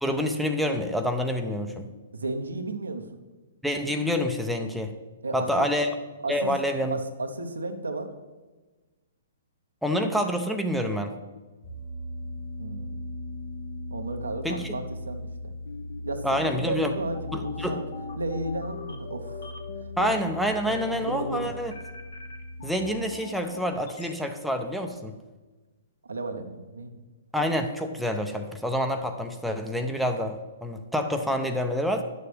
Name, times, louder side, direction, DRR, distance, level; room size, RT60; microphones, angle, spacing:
voice 1, 0.0-1.9 3.6-4.9 5.3-5.9 6.3-7.0 9.8-11.1 14.4-14.8 16.2-16.9 17.3-17.8 20.0-21.7 22.6-25.1 27.3-32.0, equal, ahead, 4 dB, 0.6 m, -27 dB
voice 2, 2.1-3.1 5.2-5.6 6.2-6.5 6.9-8.1 12.6-13.0 13.9-15.5 16.0-17.8 18.2-19.5 20.0-20.1 20.7-21.5 26.1-27.0, right 2 dB, 85° right, 5 dB, 0.9 m, -34 dB
sound 1, 11.6-22.8, left 1 dB, 90° left, 2.6 m, -39 dB
sound 2, 15.7-24.1, left 6 dB, 60° left, 1.1 m, -41 dB
10.5 x 6.8 x 3.4 m, 1.2 s
figure-of-eight pair, 125°, 0 cm